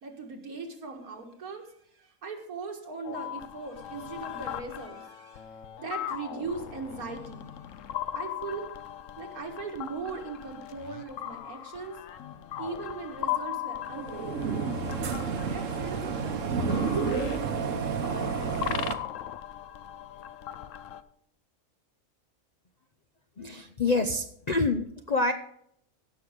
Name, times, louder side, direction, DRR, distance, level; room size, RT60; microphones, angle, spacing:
voice 1, 0.0-5.5 5.8-7.5 8.1-8.7 9.2-12.0 12.6-14.7 15.4-18.7, right 4 dB, 85° right, 3 dB, 2.2 m, -40 dB
sound 1, 3.0-21.0, left 11 dB, 70° left, 1.0 m, -39 dB
sound 2, 13.9-18.9, right 5 dB, 65° right, 1.3 m, -30 dB
voice 2, 23.4-25.3, left 3 dB, 50° left, 6 dB, 0.5 m, -27 dB
15.5 x 6.3 x 5.1 m, 0.70 s
omnidirectional pair, 1.5 m